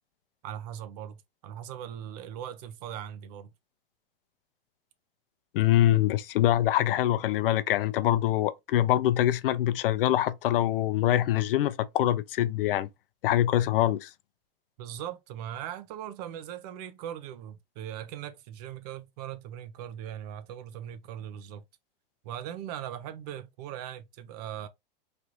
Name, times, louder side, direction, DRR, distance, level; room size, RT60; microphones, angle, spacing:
voice 1, 0.4-3.5 14.8-21.6 22.2-24.7, right 10 dB, 45° right, 0.6 m, -39 dB
voice 2, 5.5-12.9 13.2-14.1, left 13 dB, 70° left, 0.6 m, -24 dB
3.2 x 2.5 x 2.9 m
supercardioid pair, 150°, 29 cm